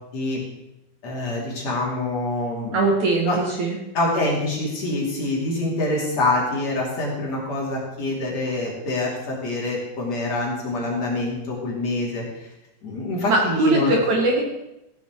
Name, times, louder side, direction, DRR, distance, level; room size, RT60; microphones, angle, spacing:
voice 1, 1.0-2.8 3.3-3.4 3.9-12.5 12.8-13.9, left 2 dB, 45° left, -3 dB, 3.7 m, -25 dB
voice 2, 2.7-3.8 13.3-14.4, right 2 dB, 55° right, 0 dB, 2.6 m, -21 dB
16.0 x 9.5 x 4.6 m, 0.91 s
omnidirectional pair, 4.5 m